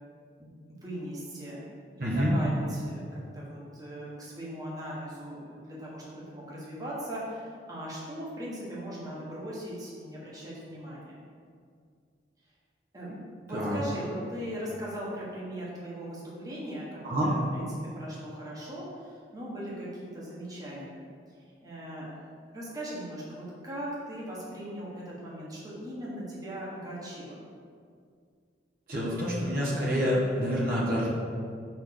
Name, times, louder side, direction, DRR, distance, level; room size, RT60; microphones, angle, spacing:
voice 1, 0.4-1.6 2.0-11.3 12.9-13.1 13.5-21.0 21.3-22.3 22.5-27.4, equal, 20° right, -7 dB, 1.4 m, -39 dB
voice 2, 2.0-2.3 13.5-13.8 17.0-17.3 28.9-31.1, equal, 50° right, -6 dB, 1.2 m, -27 dB
5.1 x 4.4 x 5.9 m, 2.2 s
head